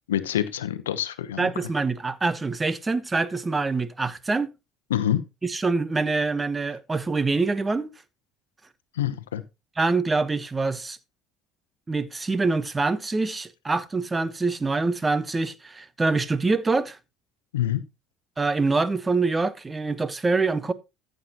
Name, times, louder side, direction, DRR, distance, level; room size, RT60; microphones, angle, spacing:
voice 1, 0.1-1.5 4.9-5.2 9.0-9.4 17.5-17.8, left 11 dB, 85° left, 0.8 m, -26 dB
voice 2, 1.4-4.5 5.4-7.9 9.8-11.0 11.9-17.0 18.4-20.7, right 3 dB, 20° right, 1.0 m, -25 dB
14.0 x 7.8 x 2.9 m
hypercardioid pair, 65°, 0 cm